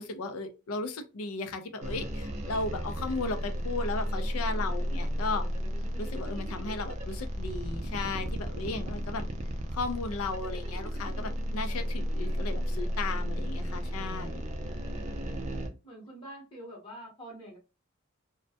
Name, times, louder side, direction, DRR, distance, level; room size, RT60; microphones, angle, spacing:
voice 1, 0.0-5.4 6.0-9.2 9.7-14.4, left 3 dB, 80° left, 9 dB, 0.4 m, -35 dB
sound 1, 1.8-15.7, equal, 35° right, 0.4 m, -33 dB
voice 2, 15.8-17.6, right 1 dB, 25° left, -3 dB, 0.8 m, -45 dB
2.1 x 2.1 x 2.7 m, 0.29 s
head